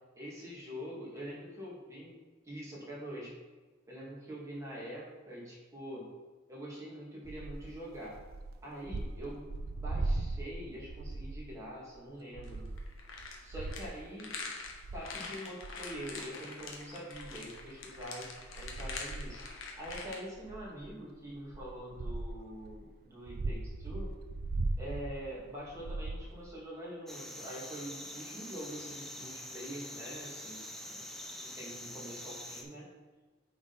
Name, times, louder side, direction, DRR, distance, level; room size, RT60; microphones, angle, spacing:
voice 1, 0.2-2.1 2.4-3.3 3.9-6.1 6.5-8.2 8.6-9.5 9.7-12.7 13.4-14.3 14.9-18.3 18.6-24.1 24.8-31.0 31.4-32.9, equal, 15° right, -6 dB, 2.0 m, -44 dB
sound 1, 7.2-11.6 11.9-12.0 12.3-14.1 14.6-15.1 15.6-16.7 17.1-22.8 23.2-26.4, right 2 dB, 50° right, 0.4 m, -39 dB
sound 2, 12.4-20.2, left 4 dB, 85° left, 1.0 m, -44 dB
sound 3, 27.1-32.6, left 1 dB, ahead, 0.6 m, -45 dB
8.7 x 3.8 x 4.0 m, 1.3 s
head